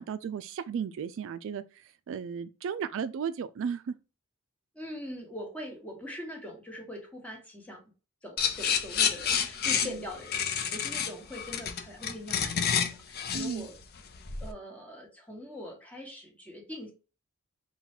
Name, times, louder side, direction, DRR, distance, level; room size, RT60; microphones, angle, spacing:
voice 1, 0.0-4.0 9.8-10.0 13.3-13.7, right 7 dB, 65° right, 0.3 m, -35 dB
voice 2, 4.7-7.9 8.2-13.7 14.4-16.9, left 1 dB, 5° left, 1.4 m, -42 dB
sound 1, 8.4-14.5, left 7 dB, 50° left, 0.6 m, -29 dB
4.0 x 2.3 x 4.2 m
head